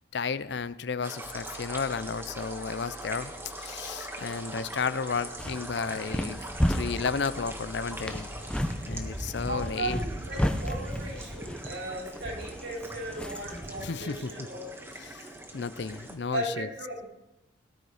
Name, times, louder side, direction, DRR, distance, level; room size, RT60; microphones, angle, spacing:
voice 1, 0.1-3.3 3.6-8.3 8.9-10.0 13.8-14.3 15.0-15.3 15.5-16.7, left 5 dB, 65° left, 16 dB, 0.6 m, -33 dB
sound 1, 1.0-16.1, right 1 dB, 15° right, 1.5 m, -40 dB
sound 2, 1.2-9.7, left 2 dB, 30° left, 1.2 m, -50 dB
sound 3, 5.1-13.7, equal, 5° left, 0.8 m, -34 dB
voice 2, 9.5-14.7 16.3-17.0, right 1 dB, 70° right, -2 dB, 5.1 m, -36 dB
18.0 x 10.5 x 4.9 m, 0.93 s
head